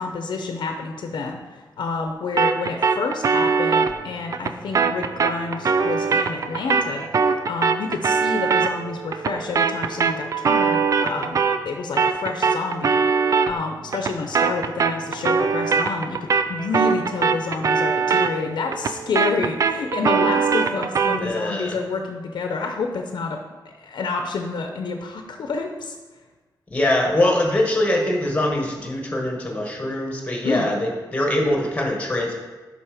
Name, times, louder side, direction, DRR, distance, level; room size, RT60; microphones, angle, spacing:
voice 1, 0.0-23.4 23.8-26.0 30.4-30.7, left 4 dB, 85° left, 4 dB, 0.7 m, -29 dB
sound 1, 2.4-11.7 12.0-21.3, right 5 dB, 45° right, 0.4 m, -22 dB
voice 2, 21.2-21.8 26.7-32.3, left 1 dB, 20° left, 0 dB, 1.4 m, -23 dB
7.3 x 5.7 x 4.9 m, 1.2 s
wide cardioid pair, 175°, 8 cm